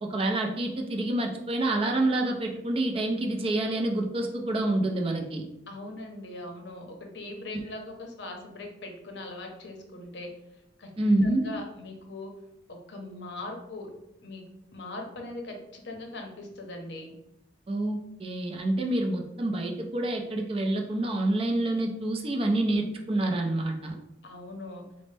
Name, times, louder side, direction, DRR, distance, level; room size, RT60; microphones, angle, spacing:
voice 1, 0.0-5.4 11.0-11.5 17.7-24.0, right 1 dB, 30° right, 3 dB, 0.4 m, -27 dB
voice 2, 5.7-10.3 10.8-10.9 11.2-12.3 12.7-13.9 14.2-17.1 24.2-24.8, left 2 dB, 65° left, 2 dB, 0.6 m, -40 dB
4.2 x 2.0 x 3.2 m, 0.87 s
head